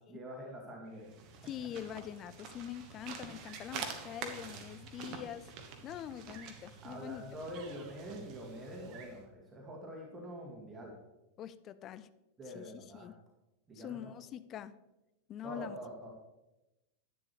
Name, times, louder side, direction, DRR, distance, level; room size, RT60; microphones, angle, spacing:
voice 1, 0.1-1.1 6.8-10.9 12.4-13.1 13.7-14.1 15.4-16.1, equal, 20° right, -2 dB, 2.1 m, -45 dB
sound 1, 0.9-9.2, right 5 dB, 40° right, 1.3 m, -47 dB
voice 2, 1.4-5.5 5.8-7.2 11.4-12.1 12.5-13.2 13.7-14.7 15.3-15.8, left 10 dB, 30° left, 14 dB, 0.5 m, -44 dB
10.5 x 9.7 x 3.2 m, 0.97 s
figure-of-eight pair, 90°, 0 cm